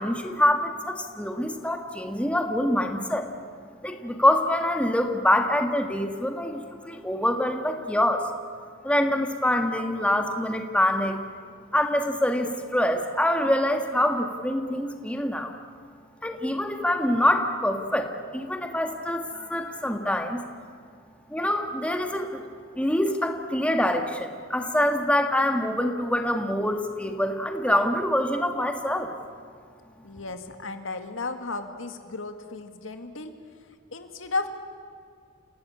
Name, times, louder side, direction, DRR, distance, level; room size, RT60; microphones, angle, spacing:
voice 1, 0.0-3.3 3.8-8.3 8.8-11.2 11.7-15.5 16.2-20.4 21.3-22.4 22.8-29.1, left 1 dB, 5° left, 5 dB, 1.8 m, -25 dB
voice 2, 30.0-33.3 33.9-34.5, left 3 dB, 85° left, 7 dB, 2.0 m, -34 dB
29.0 x 17.5 x 8.6 m, 2.2 s
head